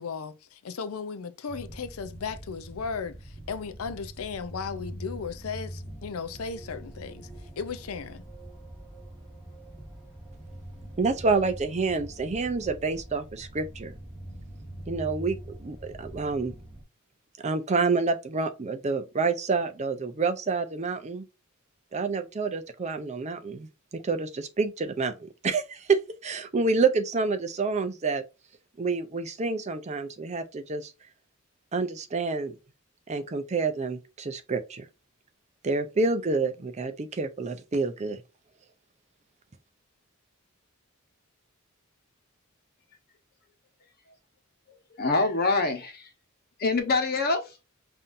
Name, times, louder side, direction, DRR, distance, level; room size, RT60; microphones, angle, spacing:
voice 1, 0.0-7.3 7.6-8.2, left 5 dB, 80° left, 0.5 m, -36 dB
sound 1, 1.5-16.8, right 1 dB, 10° right, 2.0 m, -43 dB
voice 2, 11.0-13.9 14.9-16.5 17.4-21.2 21.9-28.2 28.8-30.9 31.7-32.5 33.1-34.8 35.6-38.2, right 4 dB, 30° right, 0.5 m, -28 dB
voice 3, 44.9-46.1 46.6-47.6, left 3 dB, 45° left, 1.0 m, -25 dB
5.5 x 2.7 x 2.6 m
head